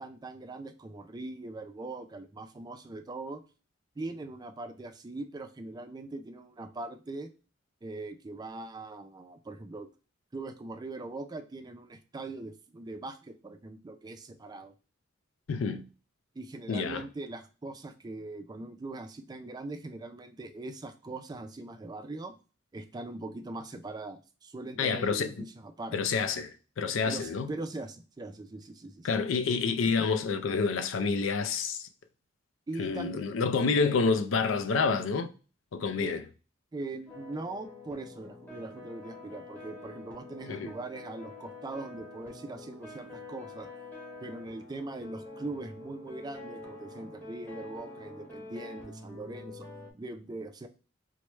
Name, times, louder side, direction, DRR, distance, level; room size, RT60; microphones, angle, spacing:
voice 1, 0.0-3.4 4.0-7.3 7.8-9.9 10.3-14.7 16.4-22.4 22.7-26.2 27.0-29.6 32.7-33.2 36.0-36.2 36.7-43.7 44.2-49.7 49.9-50.7, right 2 dB, 20° right, 0.3 m, -41 dB
voice 2, 15.5-15.8 16.7-17.0 24.8-25.4 25.9-27.5 29.0-31.9 32.8-35.3 35.7-36.2 40.5-40.7, left 4 dB, 70° left, 0.4 m, -28 dB
sound 1, 37.1-49.9, left 2 dB, 10° left, 0.9 m, -46 dB
4.5 x 2.1 x 3.1 m
head